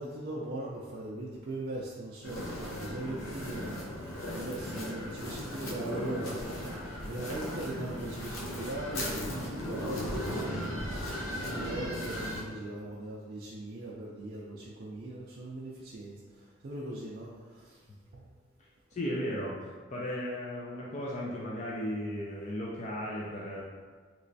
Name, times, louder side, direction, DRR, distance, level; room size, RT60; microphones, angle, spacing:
voice 1, 0.0-6.7 7.1-17.8 18.1-18.3, right 2 dB, 50° right, -6 dB, 0.4 m, -40 dB
sound 1, 2.2-12.4, left 1 dB, 85° left, 0.7 m, -37 dB
voice 2, 18.9-23.6, equal, 35° left, -5 dB, 0.4 m, -35 dB
3.2 x 3.0 x 2.7 m, 1.5 s
head